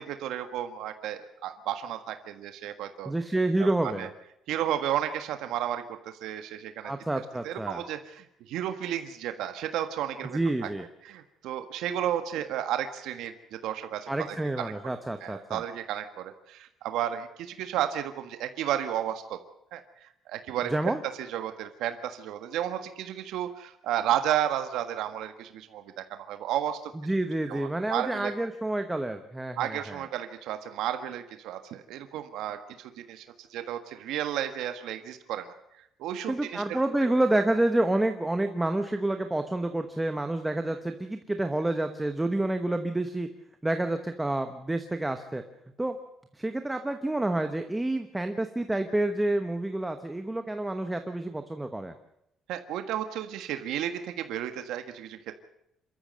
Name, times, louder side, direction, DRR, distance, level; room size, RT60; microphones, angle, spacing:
voice 1, 0.0-3.1 4.0-4.1 4.5-6.9 7.4-10.7 11.0-14.7 15.2-19.4 19.7-26.9 27.5-28.3 29.6-33.2 33.5-35.5 36.0-37.1 52.5-55.4, right 11 dB, 85° right, 8 dB, 1.6 m, -33 dB
voice 2, 3.1-4.1 6.8-7.8 10.2-10.8 14.1-15.6 20.7-21.0 26.9-30.0 36.3-43.3 43.6-45.4 45.8-46.0 46.3-51.9, right 1 dB, 10° right, 7 dB, 1.1 m, -28 dB
27.0 x 14.0 x 7.6 m, 0.79 s
cardioid pair, 165°, 0 cm